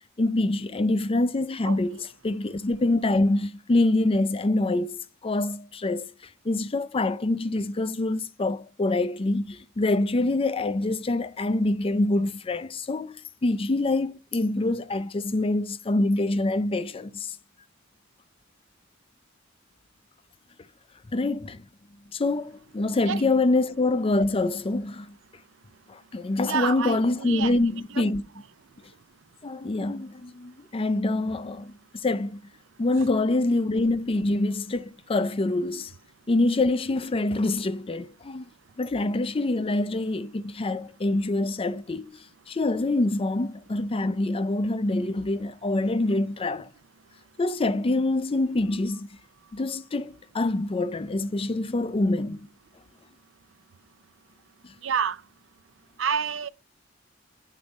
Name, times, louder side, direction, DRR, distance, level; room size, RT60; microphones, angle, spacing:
voice 1, 0.2-2.0 2.2-6.1 6.4-17.4 21.1-21.6 22.1-25.1 25.9-28.2 29.4-32.4 32.8-35.9 36.3-38.5 38.8-42.2 42.5-46.7 47.4-49.1 49.5-52.5, left 2 dB, 30° left, 0.5 m, -25 dB
voice 2, 26.4-28.1 28.7-29.0 30.5-30.6 33.0-33.1 47.0-47.2 49.4-49.5 54.8-55.3 56.0-56.5, right 7 dB, 70° right, 0.5 m, -30 dB
9.5 x 4.0 x 5.2 m
head